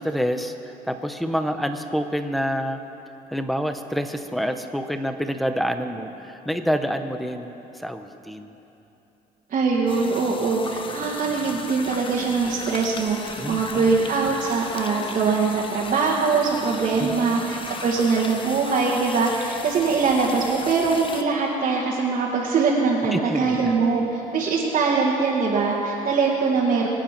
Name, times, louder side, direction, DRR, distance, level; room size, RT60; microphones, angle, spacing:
voice 1, 0.0-2.8 3.3-7.5 7.8-8.5 13.4-13.9 17.0-17.4 23.1-23.7, equal, ahead, 7 dB, 1.0 m, -27 dB
voice 2, 9.5-26.9, right 4 dB, 50° right, -5 dB, 2.1 m, -22 dB
sound 1, 9.9-21.2, left 4 dB, 30° left, 1.0 m, -37 dB
25.0 x 8.9 x 6.0 m, 3.0 s
cardioid pair, 110°, 17 cm